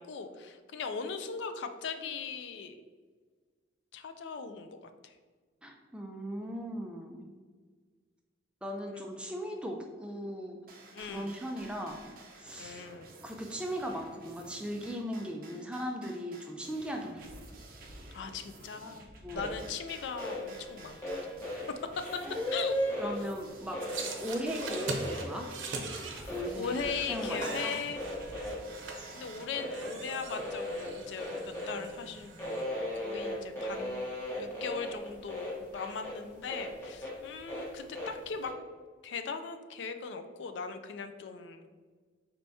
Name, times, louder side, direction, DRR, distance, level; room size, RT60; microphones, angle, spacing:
voice 1, 0.0-2.8 3.9-4.7 5.0-5.1 8.9-9.0 10.9-11.4 12.6-13.1 18.1-19.1 19.3-21.4 22.5-22.8 24.0-24.3 26.0-28.0 29.1-32.3 33.0-34.0 34.4-38.5 39.0-41.7, left 5 dB, 75° left, 8 dB, 0.3 m, -39 dB
voice 2, 5.6-7.3 8.6-10.6 11.0-12.0 12.4-12.8 13.2-17.3 19.2-19.6 22.2-22.4 23.0-23.8 24.2-25.5 26.3-27.7, equal, 5° right, 2 dB, 0.3 m, -38 dB
sound 1, 10.7-29.5, right 2 dB, 50° right, 0.6 m, -51 dB
sound 2, 19.3-19.5 20.0-20.4 21.0-23.1 23.7-24.0 24.5-25.8 26.2-26.5 27.1-27.6 27.9-29.1 29.5-29.9 30.1-31.9 32.2-36.2 36.5-38.1 38.4-38.5, left 1 dB, 15° left, 0.9 m, -36 dB
sound 3, 23.8-32.6, right 3 dB, 90° right, 0.6 m, -42 dB
4.3 x 3.4 x 2.6 m, 1.5 s
head